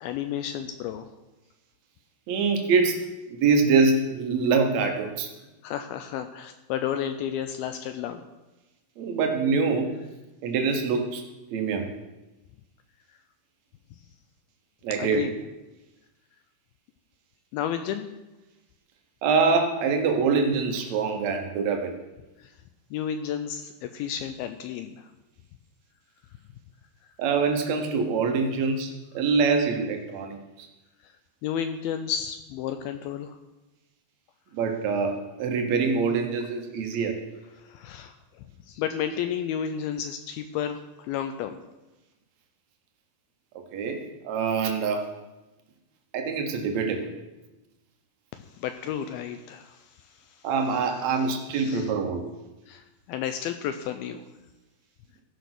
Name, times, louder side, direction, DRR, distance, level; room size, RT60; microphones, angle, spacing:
voice 1, 0.0-1.1 5.6-8.2 15.0-15.3 17.5-18.1 22.4-22.5 22.9-25.1 31.0-31.1 31.4-33.4 37.6-38.1 38.7-41.6 48.3-50.5 50.7-51.2 51.5-51.9 52.7-54.2, left 9 dB, 85° left, 8 dB, 2.2 m, -32 dB
voice 2, 2.3-5.3 9.0-10.0 10.4-11.2 11.5-11.9 14.8-15.3 19.2-21.9 27.2-30.7 34.5-37.2 43.7-45.0 46.1-47.1 50.4-52.3, right 4 dB, 80° right, 4 dB, 1.6 m, -25 dB
15.0 x 5.2 x 5.9 m, 1.0 s
omnidirectional pair, 4.7 m